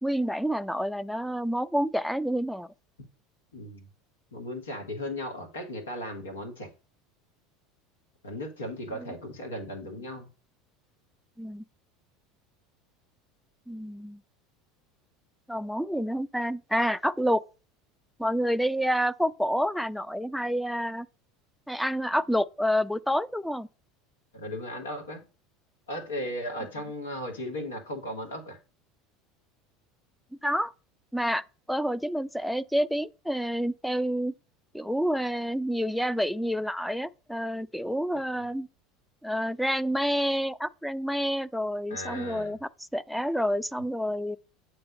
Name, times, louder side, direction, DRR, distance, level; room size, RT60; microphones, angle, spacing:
voice 1, 0.0-2.7 9.0-9.1 11.4-11.6 13.7-14.2 15.5-17.4 18.2-21.1 21.7-23.7 30.4-30.7 31.1-31.4 31.7-34.3 34.7-38.7 39.2-44.4, equal, ahead, 0.4 m, -28 dB
voice 2, 3.5-3.9 4.3-6.7 8.2-10.3 24.3-25.2 25.9-28.6 41.9-42.5, left 1 dB, 85° left, 1.6 m, -36 dB
7.9 x 3.3 x 5.2 m
hypercardioid pair, 80°, 0 cm